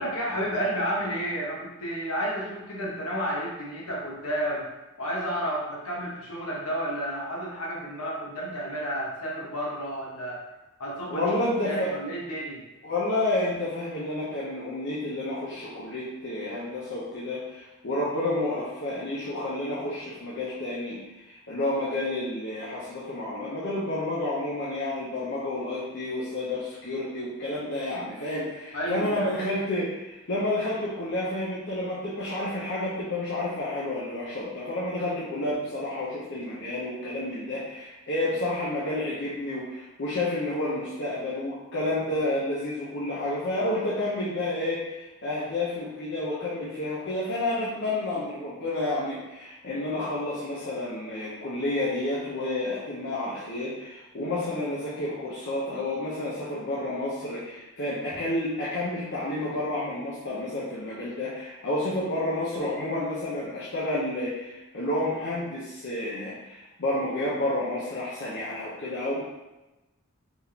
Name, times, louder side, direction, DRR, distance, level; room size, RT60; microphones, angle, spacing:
voice 1, 0.0-4.7 5.0-10.4 10.8-11.2 11.6-12.6 28.7-29.4, equal, 75° left, -4 dB, 1.3 m, -31 dB
voice 2, 11.1-11.9 12.8-69.2, left 1 dB, 55° left, -8 dB, 0.9 m, -30 dB
4.4 x 3.6 x 2.9 m, 1.0 s
head